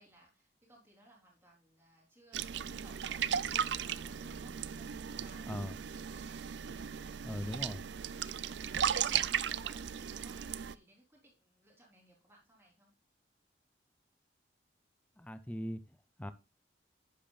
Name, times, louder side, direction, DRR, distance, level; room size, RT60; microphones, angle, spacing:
voice 1, 0.0-5.5 6.0-6.2 7.9-13.0, right 1 dB, 15° right, -2 dB, 3.6 m, -62 dB
sound 1, 2.3-10.7, right 8 dB, 75° right, 0.5 m, -36 dB
voice 2, 7.2-7.8 15.2-16.3, left 1 dB, 10° left, 12 dB, 0.5 m, -40 dB
10.5 x 8.6 x 2.4 m, 0.27 s
head